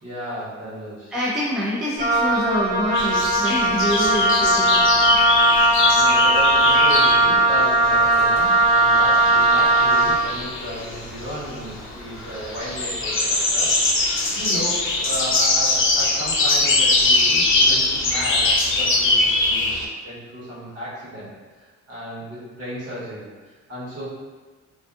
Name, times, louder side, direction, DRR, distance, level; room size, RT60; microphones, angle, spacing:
voice 1, 0.0-1.1 5.2-19.8 20.0-21.3 21.6-23.3 23.7-24.0, equal, 55° right, -8 dB, 1.3 m, -34 dB
voice 2, 1.1-5.2, equal, ahead, -7 dB, 0.5 m, -26 dB
Wind instrument woodwind instrument, 2.0-10.2, right 1 dB, 30° right, 0.8 m, -18 dB
sound 1, 2.9-19.8, left 2 dB, 45° left, 0.6 m, -22 dB
2.6 x 2.3 x 2.4 m, 1.3 s
cardioid pair, 90°, 30 cm